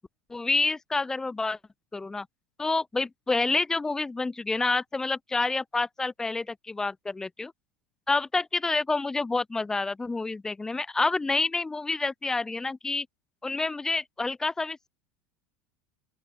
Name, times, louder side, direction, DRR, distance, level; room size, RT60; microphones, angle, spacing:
voice 1, 0.3-1.6 1.9-2.3 2.6-7.5 8.1-13.1 13.4-14.9, left 3 dB, 10° left, 0.7 m, -28 dB
open air
supercardioid pair, 145°, 6 cm